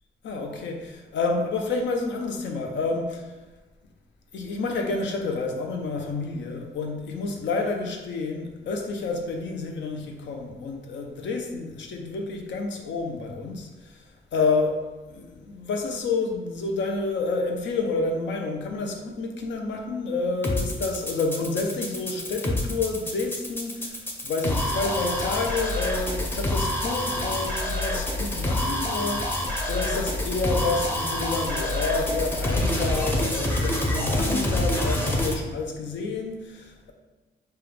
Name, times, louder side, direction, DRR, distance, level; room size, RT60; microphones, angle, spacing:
voice 1, 0.2-3.3 4.3-14.0 14.3-14.8 15.1-36.9, left 3 dB, 80° left, 3 dB, 0.6 m, -29 dB
sound 1, 20.4-35.3, left 1 dB, 10° left, 0.6 m, -27 dB
5.4 x 2.3 x 3.4 m, 1.2 s
wide cardioid pair, 130°, 19 cm